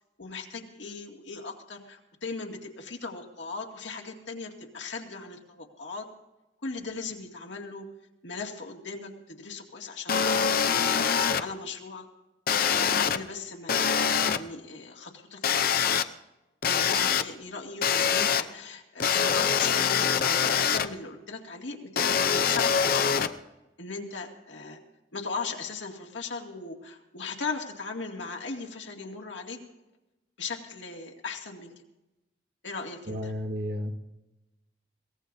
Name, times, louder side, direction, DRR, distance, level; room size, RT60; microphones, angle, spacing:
voice 1, 0.2-6.1 6.6-7.9 8.2-11.0 11.4-12.1 12.7-15.9 16.6-23.3 23.8-24.8 25.1-29.6 30.4-31.7 32.6-33.3, left 4 dB, 85° left, 1 dB, 2.2 m, -38 dB
sound 1, 10.1-11.4 12.5-13.2 13.7-14.4 15.4-16.0 16.6-17.2 17.8-18.4 19.0-20.9 22.0-23.3, left 7 dB, 50° left, 0.6 m, -24 dB
voice 2, 33.1-34.0, left 1 dB, 60° right, 3 dB, 1.8 m, -32 dB
22.5 x 17.5 x 2.7 m, 0.98 s
head